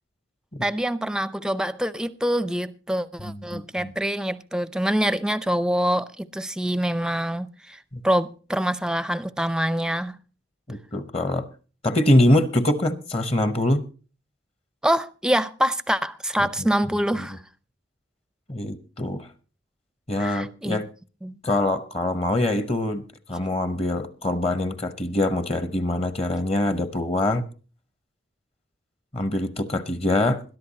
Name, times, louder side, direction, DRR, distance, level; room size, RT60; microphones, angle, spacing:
voice 1, 0.6-10.2 14.8-17.4 20.2-20.8 21.2-21.3, equal, 5° right, 0.5 m, -25 dB
voice 2, 3.2-3.9 7.9-8.0 10.7-11.5 11.8-13.8 16.4-16.7 17.2-17.3 18.5-19.3 20.1-20.9 21.4-27.4 29.1-30.4, left 1 dB, 30° left, 0.9 m, -24 dB
21.5 x 11.5 x 2.8 m
head